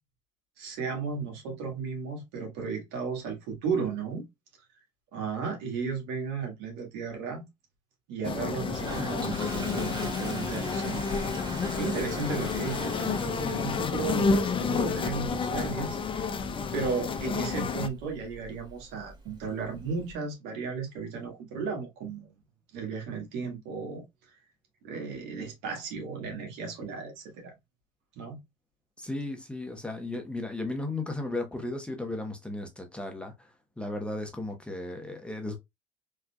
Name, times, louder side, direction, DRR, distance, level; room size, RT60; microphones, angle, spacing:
voice 1, 0.6-4.2 5.1-7.4 8.1-11.0 11.7-16.0 16.7-22.3 22.7-24.0 24.8-27.5 28.1-28.4, right 5 dB, 70° right, 1.7 m, -34 dB
sound 1, 8.2-17.9, left 5 dB, 30° left, 0.6 m, -30 dB
Toilet flush, 8.7-20.1, right 2 dB, 25° right, 1.4 m, -44 dB
voice 2, 29.0-35.6, left 2 dB, 5° left, 0.9 m, -35 dB
3.6 x 3.2 x 2.3 m
supercardioid pair, 85°, 17 cm